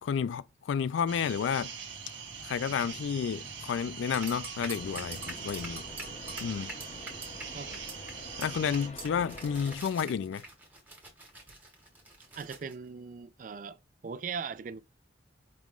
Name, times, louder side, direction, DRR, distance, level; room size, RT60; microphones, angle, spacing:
voice 1, 0.0-1.7 2.4-5.8 6.4-6.7 8.4-10.4, left 7 dB, 80° left, 0.3 m, -31 dB
sound 1, 1.1-8.9, right 6 dB, 90° right, 1.2 m, -42 dB
sound 2, 4.1-7.4 7.7-8.1 8.4-8.5 8.7-12.7, right 2 dB, 10° right, 1.1 m, -44 dB
sound 3, 4.7-9.8, left 2 dB, 35° left, 0.8 m, -47 dB
voice 2, 12.4-14.8, right 6 dB, 45° right, 0.3 m, -40 dB
5.4 x 3.0 x 2.4 m
head